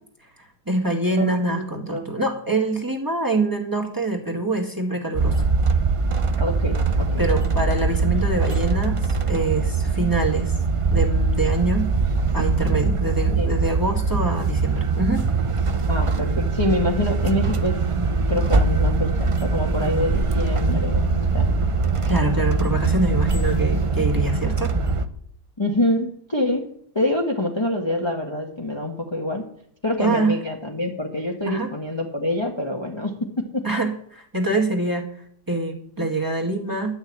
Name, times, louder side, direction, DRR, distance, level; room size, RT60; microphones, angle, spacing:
voice 1, 0.7-5.3 7.2-10.5 10.9-11.9 12.3-15.2 22.1-24.7 30.0-30.3 31.5-31.7 33.6-35.1 35.5-36.9, right 2 dB, 15° right, 1 dB, 1.9 m, -24 dB
voice 2, 1.2-2.1 6.4-7.2 13.3-13.5 15.9-17.8 18.3-21.4 25.6-26.6 26.9-29.4 29.8-33.1, left 1 dB, 20° left, 0 dB, 1.3 m, -26 dB
sound 1, 5.1-25.1, right 3 dB, 45° right, 0.4 m, -22 dB
11.0 x 6.4 x 8.7 m, 0.66 s
omnidirectional pair, 1.7 m